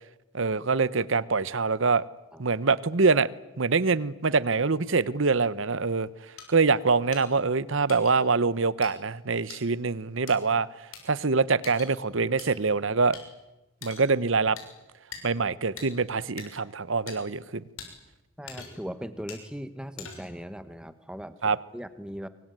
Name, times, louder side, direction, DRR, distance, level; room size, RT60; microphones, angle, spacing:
voice 1, 0.3-2.0 2.4-3.3 3.6-6.1 6.5-10.7 11.1-13.2 13.8-14.6 15.2-17.6 21.4-21.6, right 4 dB, 65° right, 18 dB, 0.9 m, -24 dB
sound 1, 6.4-6.5 7.1-7.2 7.9-8.1 8.8-8.9 9.5-9.6 10.3-10.4 10.9-11.0 11.6-11.9 12.4-12.5 13.1-13.2 13.8-14.1 14.6-14.7 15.1-15.2 15.8-15.9 16.4-16.5 17.1-17.2 17.8-17.9 18.5-18.9 19.3-19.4 20.0-20.4, left 7 dB, 80° left, 6.6 m, -42 dB
voice 2, 18.4-22.3, equal, 5° right, 12 dB, 1.2 m, -39 dB
25.0 x 23.0 x 9.2 m, 1.0 s
head